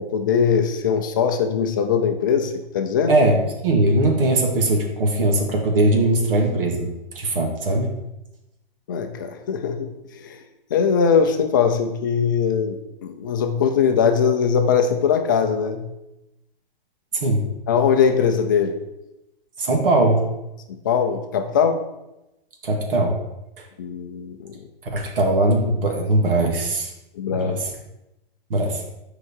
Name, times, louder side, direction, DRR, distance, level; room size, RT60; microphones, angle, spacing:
voice 1, 0.0-3.1 8.9-10.4 10.7-15.9 17.7-18.8 20.8-21.8 23.8-24.5 27.1-27.6, left 6 dB, 20° left, 5 dB, 0.5 m, -21 dB
voice 2, 3.1-7.9 17.1-17.4 19.6-20.3 22.6-23.2 24.9-26.9 27.3-27.7 28.5-28.8, right 2 dB, 70° right, 1 dB, 2.1 m, -20 dB
12.0 x 4.9 x 4.3 m, 0.92 s
hypercardioid pair, 175°, 29 cm